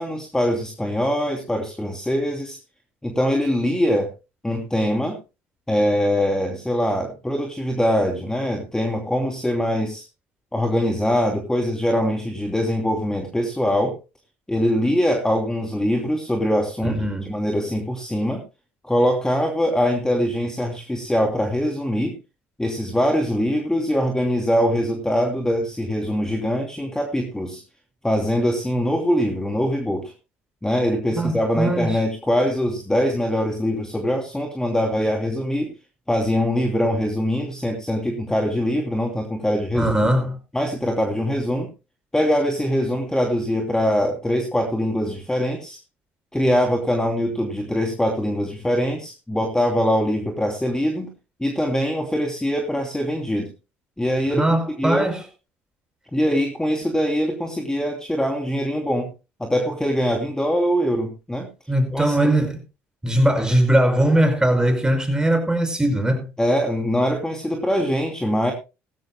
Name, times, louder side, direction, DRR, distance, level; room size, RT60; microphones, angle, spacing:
voice 1, 0.0-2.6 3.0-4.1 4.4-5.2 5.7-10.0 10.5-14.0 14.5-17.0 17.2-18.4 18.8-22.2 22.6-27.6 28.0-30.1 30.6-35.7 36.1-39.9 40.5-41.7 42.1-45.8 46.3-51.1 51.4-53.5 54.0-54.5 54.8-55.1 56.1-59.1 59.4-61.5 61.9-62.3 66.4-68.5, equal, 10° left, 2.8 m, -23 dB
voice 2, 16.8-17.3 31.2-32.0 39.7-40.4 54.4-55.2 61.7-62.6 63.0-66.3, right 1 dB, 10° right, 5.2 m, -20 dB
18.5 x 15.5 x 2.2 m
hypercardioid pair, 60°, 7 cm